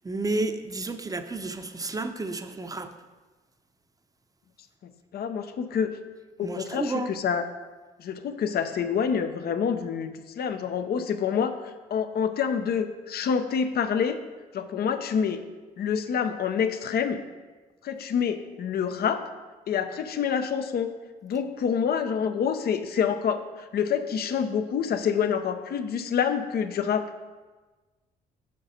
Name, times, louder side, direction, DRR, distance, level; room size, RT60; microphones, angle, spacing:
voice 1, 0.0-2.9 6.4-7.1, right 2 dB, 20° right, 8 dB, 0.7 m, -31 dB
voice 2, 5.1-5.9 6.4-7.4 8.0-11.5 11.9-14.2 14.5-15.4 15.8-17.2 17.8-19.2 19.7-20.9 21.2-27.0, left 7 dB, 65° left, 9 dB, 0.7 m, -27 dB
7.6 x 6.4 x 4.3 m, 1.3 s
supercardioid pair, 60°, 18 cm